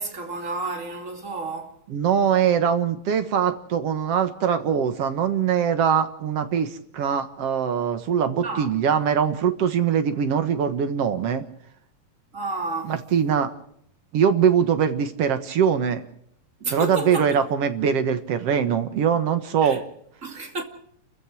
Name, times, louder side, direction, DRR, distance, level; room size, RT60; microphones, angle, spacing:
voice 1, 0.0-1.8 8.4-8.7 12.3-13.0 16.6-17.5 19.6-19.8 20.2-20.6, right 2 dB, 25° right, 2.7 m, -31 dB
voice 2, 1.9-11.4 12.8-13.5 14.1-16.0 16.7-19.8, right 7 dB, 55° right, 2.1 m, -22 dB
29.0 x 15.0 x 6.3 m
omnidirectional pair, 3.7 m